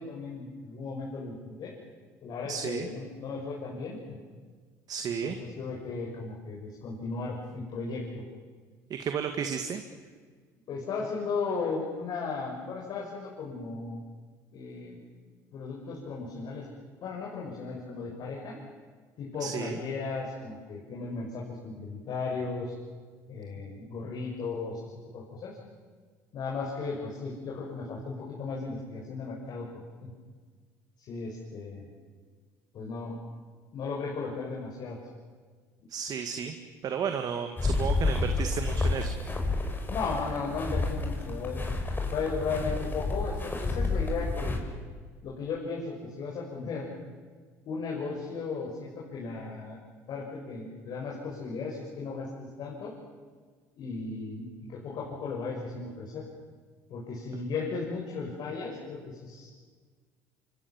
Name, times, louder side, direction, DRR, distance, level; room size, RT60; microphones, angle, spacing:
voice 1, 0.0-1.7 2.2-4.0 5.2-8.2 10.7-14.0 14.5-15.0 15.5-16.7 17.0-18.6 19.2-22.7 23.3-25.6 26.3-30.1 31.0-31.9 32.7-33.2 33.7-35.0 39.9-41.6 42.1-44.6 45.2-46.9 47.7-49.8 50.1-53.0 53.8-56.3 56.9-59.5, left 4 dB, 55° left, -2 dB, 6.1 m, -36 dB
voice 2, 2.5-2.9 4.9-5.4 8.9-9.8 19.4-19.8 35.9-36.6 36.8-39.1, right 7 dB, 50° right, 6 dB, 2.1 m, -33 dB
sound 1, 37.6-44.6, left 3 dB, 25° left, 5.7 m, -30 dB
28.0 x 24.5 x 7.4 m, 1.5 s
hypercardioid pair, 75°, 8 cm